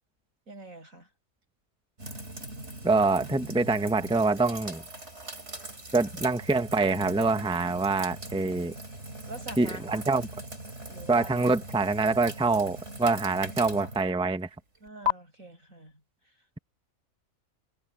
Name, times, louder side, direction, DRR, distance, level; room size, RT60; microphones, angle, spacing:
voice 1, 0.5-1.1 9.3-10.2 10.9-11.3 14.8-16.4, right 2 dB, 85° right, 7.8 m, -46 dB
Running water from tap, 2.0-15.1, left 2 dB, 60° right, 5.2 m, -39 dB
voice 2, 2.8-4.8 5.9-8.7 9.6-10.3 11.1-14.5, right 3 dB, 5° right, 0.9 m, -25 dB
omnidirectional pair, 1.4 m